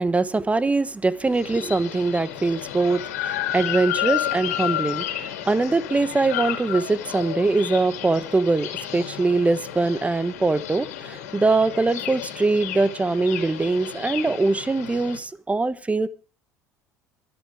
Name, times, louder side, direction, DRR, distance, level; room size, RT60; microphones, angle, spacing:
voice 1, 0.0-16.1, right 3 dB, 15° right, 1.4 m, -22 dB
sound 1, 1.2-15.2, left 12 dB, 80° left, 2.9 m, -32 dB
23.5 x 11.0 x 3.7 m
hypercardioid pair, 65°, 8 cm